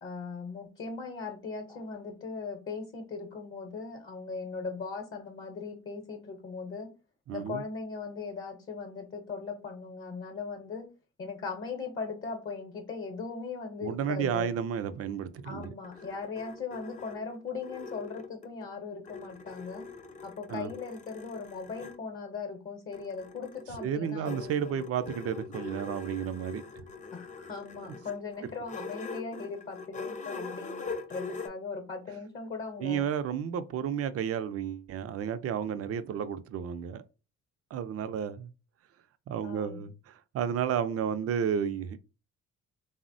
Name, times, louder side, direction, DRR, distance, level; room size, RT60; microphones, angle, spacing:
voice 1, 0.0-6.9 7.3-10.9 11.2-14.5 15.4-19.9 20.2-24.8 27.1-33.0 39.4-39.9, left 4 dB, 45° left, 0.8 m, -39 dB
voice 2, 7.3-7.6 13.8-15.7 20.5-20.7 23.8-26.9 32.8-37.0 37.7-38.5 39.3-42.0, right 8 dB, 50° right, 0.4 m, -32 dB
sound 1, 15.4-18.7 19.1-22.0 22.9-31.5, left 4 dB, 25° left, 0.4 m, -43 dB
3.3 x 2.0 x 2.5 m
cardioid pair, 90°, 30 cm